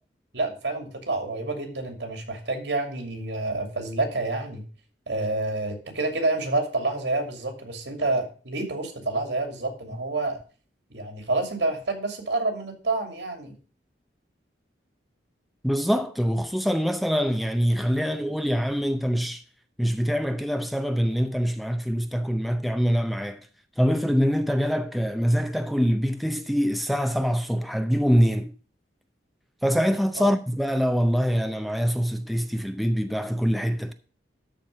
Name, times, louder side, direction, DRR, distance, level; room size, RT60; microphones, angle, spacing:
voice 1, 0.3-4.6 5.1-10.4 10.9-13.5 30.2-30.3, right 2 dB, 80° right, 2.8 m, -28 dB
voice 2, 15.6-19.4 19.8-23.4 23.8-28.5 29.6-33.9, equal, ahead, 0.6 m, -24 dB
13.0 x 4.6 x 6.6 m
head